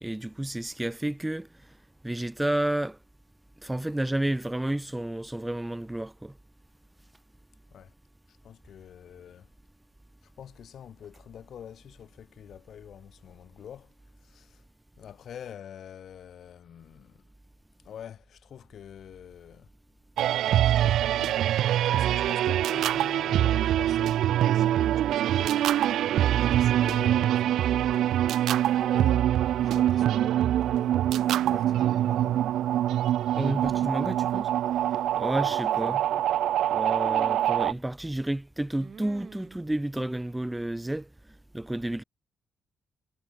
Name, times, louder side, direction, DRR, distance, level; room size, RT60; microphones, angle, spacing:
voice 1, 0.0-1.5 2.0-3.0 3.6-6.3 33.4-34.5 35.2-36.0 36.7-41.1 41.5-42.0, right 1 dB, 10° right, 0.5 m, -30 dB
voice 2, 8.3-9.5 10.2-13.9 14.2-14.6 15.0-17.2 17.8-19.7 20.6-21.4 21.9-25.8 26.2-31.1 31.4-32.5 35.4-35.5 35.9-36.0, left 9 dB, 65° left, 4.7 m, -46 dB
sound 1, 20.2-37.7, right 12 dB, 90° right, 0.4 m, -24 dB
sound 2, 26.2-26.9 28.2-29.0 29.7-30.4 31.7-32.2 32.4-32.5 33.4-34.1 35.2-36.0 37.0-37.8 38.8-39.6, right 6 dB, 40° right, 2.2 m, -45 dB
cardioid pair, 115°, 0 cm